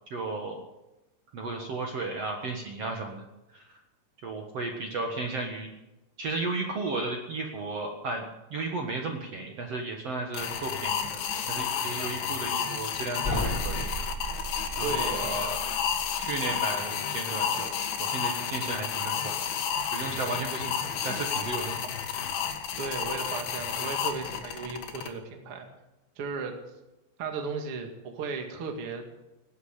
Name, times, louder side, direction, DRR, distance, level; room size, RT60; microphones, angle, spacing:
voice 1, 0.1-0.6 1.3-3.2 3.5-3.7 4.2-5.7 6.2-8.2 8.5-13.8 14.8-15.6 16.2-19.4 19.9-21.9, right 3 dB, 70° right, 2 dB, 1.4 m, -34 dB
sound 1, 10.3-25.1, left 8 dB, 75° left, 3.8 m, -31 dB
sound 2, 13.2-16.3, equal, 10° left, 5.1 m, -34 dB
voice 2, 14.8-15.3 22.8-25.7 26.2-26.5 27.2-29.2, right 5 dB, 45° right, 3 dB, 2.0 m, -35 dB
19.0 x 9.4 x 8.2 m, 0.98 s
omnidirectional pair, 5.5 m